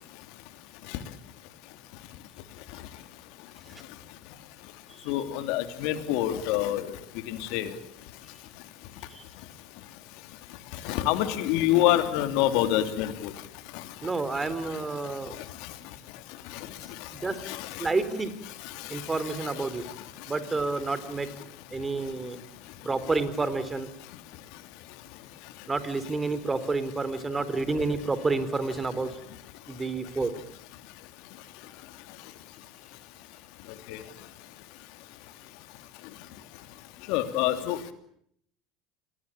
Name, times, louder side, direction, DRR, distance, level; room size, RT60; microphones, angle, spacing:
voice 1, 5.1-6.8 7.3-7.7 10.8-13.3 17.5-17.6 33.9-34.0 37.1-37.8, left 13 dB, 65° left, 9 dB, 3.0 m, -26 dB
voice 2, 14.0-15.4 17.1-17.4 17.8-18.3 18.9-19.8 20.3-21.3 21.7-22.4 22.8-23.9 25.7-29.1 29.7-30.3, right 3 dB, 20° right, 13 dB, 4.0 m, -29 dB
28.0 x 20.5 x 8.9 m, 0.68 s
hypercardioid pair, 80°, 0 cm